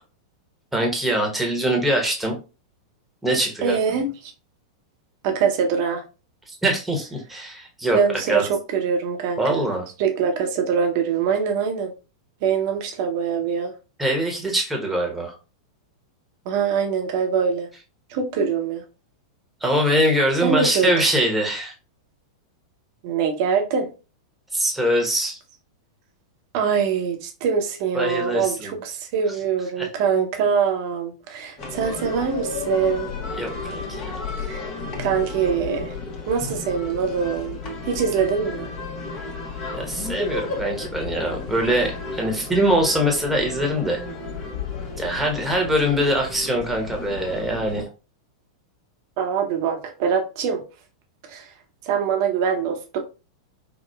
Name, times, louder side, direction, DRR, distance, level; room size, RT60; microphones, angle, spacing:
voice 1, 0.7-2.4 3.2-3.8 6.6-8.0 8.3-8.5 9.4-9.8 14.0-15.3 19.6-21.7 24.5-25.4 27.9-28.8 29.8-29.9 33.3-33.8 39.7-44.0 45.0-47.9, right 1 dB, 5° right, 1.1 m, -23 dB
voice 2, 3.6-4.3 5.2-6.0 7.9-9.7 10.0-11.9 12.4-13.7 16.4-17.7 18.1-18.8 20.4-20.9 23.0-23.9 26.5-33.1 34.4-34.7 35.0-36.0 36.3-37.6 37.9-38.7 49.2-50.6 51.3-51.5 51.8-53.0, right 6 dB, 50° right, 0.8 m, -23 dB
sound 1, 31.6-47.8, left 4 dB, 35° left, 0.9 m, -33 dB
4.8 x 2.0 x 2.3 m
figure-of-eight pair, 95°, 2 cm